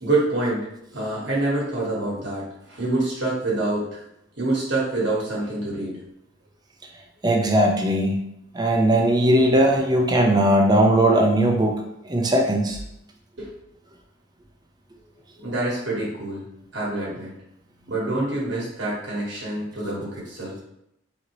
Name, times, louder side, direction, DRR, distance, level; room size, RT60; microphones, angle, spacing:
voice 1, 0.0-4.0 4.4-6.0 9.4-9.5 13.4-13.5 15.4-16.5 16.7-17.3 17.9-20.6, right 2 dB, 65° right, -6 dB, 1.4 m, -26 dB
voice 2, 7.2-8.2 8.5-11.8 12.1-12.8, right 1 dB, 20° right, 1 dB, 0.6 m, -19 dB
4.2 x 2.8 x 3.0 m, 0.79 s
head